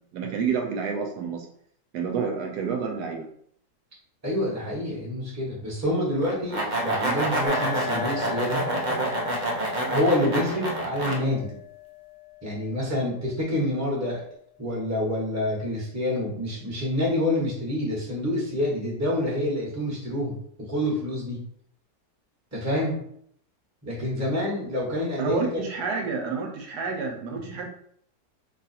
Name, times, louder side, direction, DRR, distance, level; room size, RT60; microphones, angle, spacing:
voice 1, 0.0-1.5 1.9-3.3 25.2-27.7, right 5 dB, 75° right, 3 dB, 1.1 m, -29 dB
voice 2, 4.2-8.6 9.9-11.5 12.4-14.2 14.6-21.4 22.5-23.0 23.8-25.6, left 1 dB, 10° right, -4 dB, 0.9 m, -27 dB
sound 1, 6.2-11.2, right 1 dB, 55° right, 0.5 m, -27 dB
sound 2, 7.5-15.0, left 11 dB, 85° left, 1.2 m, -40 dB
2.9 x 2.4 x 4.1 m, 0.67 s
omnidirectional pair, 1.8 m